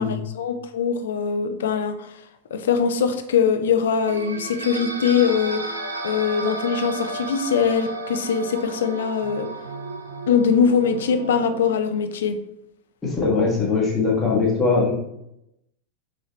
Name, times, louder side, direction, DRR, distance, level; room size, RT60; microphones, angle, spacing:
voice 1, 0.0-2.1 2.5-5.7 6.0-9.5 10.3-12.4, left 6 dB, 60° left, 7 dB, 0.4 m, -22 dB
sound 1, 4.1-11.7, right 3 dB, 75° right, 0.4 m, -33 dB
voice 2, 13.0-14.9, left 4 dB, 15° left, -4 dB, 1.3 m, -21 dB
3.9 x 2.9 x 3.0 m, 0.80 s
figure-of-eight pair, 90°, 0 cm